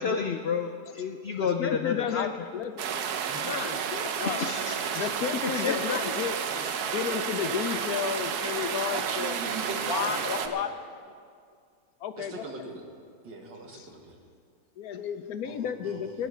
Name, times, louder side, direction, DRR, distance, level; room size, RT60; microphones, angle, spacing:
voice 1, 0.0-2.5 5.4-6.0, left 6 dB, 85° left, 6 dB, 0.5 m, -30 dB
voice 2, 1.4-2.9 3.2-9.4 9.9-10.7 12.0-12.7 13.7-13.9 14.8-16.3, left 8 dB, 65° left, 9 dB, 1.0 m, -33 dB
sound 1, 2.8-10.5, right 7 dB, 70° right, 1.3 m, -31 dB
voice 3, 8.9-10.6 12.2-12.8 13.2-14.2 15.4-16.0, right 3 dB, 85° right, 2 dB, 2.3 m, -39 dB
18.5 x 9.6 x 5.7 m, 2.2 s
omnidirectional pair, 1.9 m